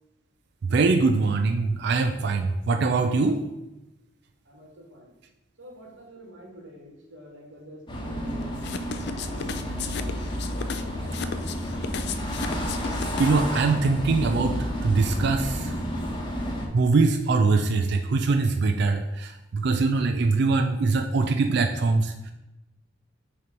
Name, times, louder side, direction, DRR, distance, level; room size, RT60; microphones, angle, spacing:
voice 1, 0.6-3.4 13.2-15.7 16.7-22.3, right 3 dB, 60° right, 5 dB, 0.4 m, -23 dB
voice 2, 4.4-5.1 5.6-8.5 8.9-10.2 10.7-11.5, equal, 85° right, -1 dB, 1.7 m, -48 dB
sound 1, 7.9-16.7, equal, 25° left, 1.0 m, -30 dB
sound 2, 8.6-13.5, left 6 dB, 60° left, 0.4 m, -35 dB
6.5 x 3.0 x 5.2 m, 0.96 s
head